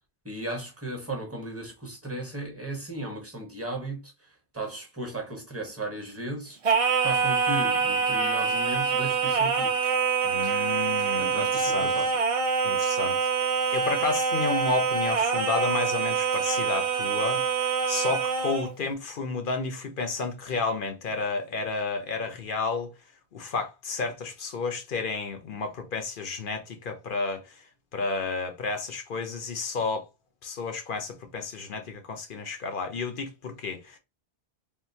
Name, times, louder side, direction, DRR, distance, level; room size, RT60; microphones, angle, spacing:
voice 1, 0.2-4.1 4.5-6.6 7.0-9.7 11.2-12.1, right 2 dB, 15° right, 0.9 m, -35 dB
Singing, 6.6-18.7, right 5 dB, 50° right, 0.4 m, -25 dB
voice 2, 10.2-11.9 12.6-13.2 13.7-22.9 23.3-27.5 27.9-30.1 30.4-34.0, left 4 dB, 55° left, 0.8 m, -31 dB
3.6 x 2.6 x 2.7 m
omnidirectional pair, 1.1 m